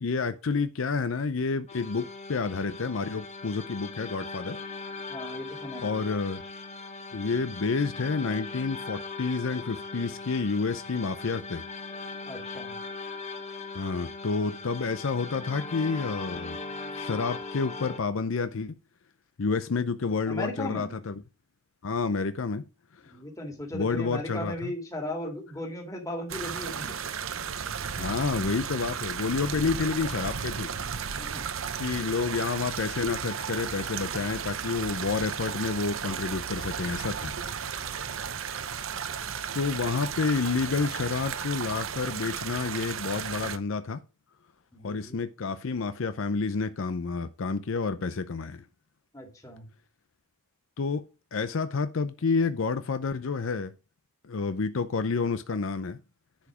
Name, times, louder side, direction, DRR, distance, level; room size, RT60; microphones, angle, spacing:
voice 1, 0.0-4.6 5.8-6.4 7.1-11.6 13.7-16.6 17.0-18.8 19.4-21.1 21.8-22.6 22.9-23.2 23.7-24.7 28.0-30.7 31.8-37.3 39.5-44.0 44.8-48.6 50.8-53.7 54.2-56.0, left 4 dB, 65° left, 0.6 m, -29 dB
sound 1, 1.7-18.0, left 3 dB, 30° left, 1.3 m, -39 dB
voice 2, 5.1-6.1 12.3-12.8 20.3-21.0 23.1-27.0 29.5-29.7 31.2-31.4 37.8-38.3 44.7-45.2 49.1-49.7, left 1 dB, 15° left, 2.2 m, -37 dB
sound 2, 26.3-43.6, right 7 dB, 65° right, 0.8 m, -34 dB
10.5 x 4.9 x 4.9 m
head